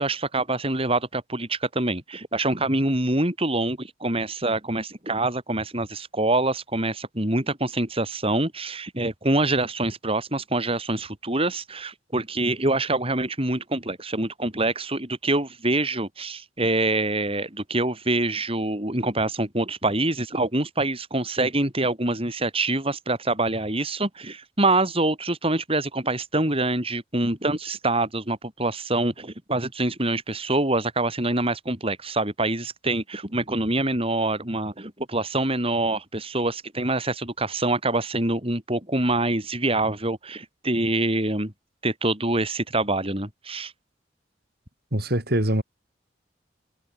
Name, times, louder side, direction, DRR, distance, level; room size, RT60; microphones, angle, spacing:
voice 1, 0.0-41.5 41.8-43.7, right 2 dB, 30° right, 7.3 m, -25 dB
voice 2, 44.9-45.6, right 1 dB, 60° right, 5.3 m, -23 dB
head